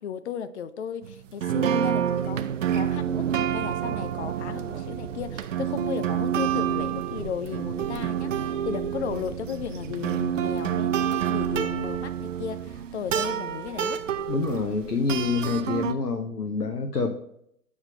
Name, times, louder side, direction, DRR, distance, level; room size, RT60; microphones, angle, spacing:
voice 1, 0.0-14.0, left 8 dB, 45° left, 0.6 m, -35 dB
sound 1, 1.0-1.1 1.4-15.9, right 9 dB, 55° right, 0.6 m, -28 dB
voice 2, 14.3-17.1, left 4 dB, 90° left, 0.9 m, -27 dB
7.3 x 5.0 x 5.1 m
figure-of-eight pair, 125°, 46 cm